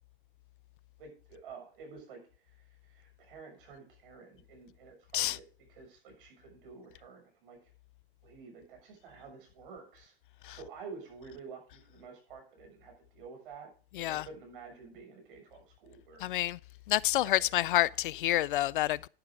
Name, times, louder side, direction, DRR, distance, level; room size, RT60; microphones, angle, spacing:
voice 1, 1.0-7.7 8.2-10.1 10.5-13.7 14.0-16.5 17.2-17.4, right 5 dB, 60° right, 6.7 m, -50 dB
voice 2, 16.2-16.6 16.9-19.1, left 15 dB, 60° left, 0.5 m, -28 dB
10.5 x 10.5 x 3.7 m
hypercardioid pair, 110°, 30 cm